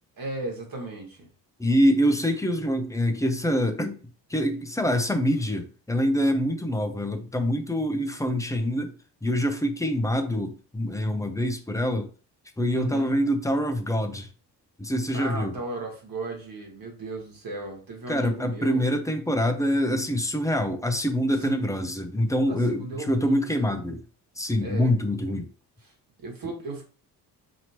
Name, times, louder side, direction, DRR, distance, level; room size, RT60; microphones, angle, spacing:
voice 1, 0.1-1.3 12.7-13.1 15.1-18.9 21.4-21.7 22.5-23.8 24.6-24.9 26.2-26.8, right 2 dB, 45° right, 1.6 m, -36 dB
voice 2, 1.6-4.0 4.3-8.9 9.2-12.1 12.6-14.3 14.8-15.5 18.1-24.0 24.4-25.5, equal, 5° left, 0.6 m, -25 dB
3.0 x 2.8 x 2.8 m
hypercardioid pair, 45°, 47 cm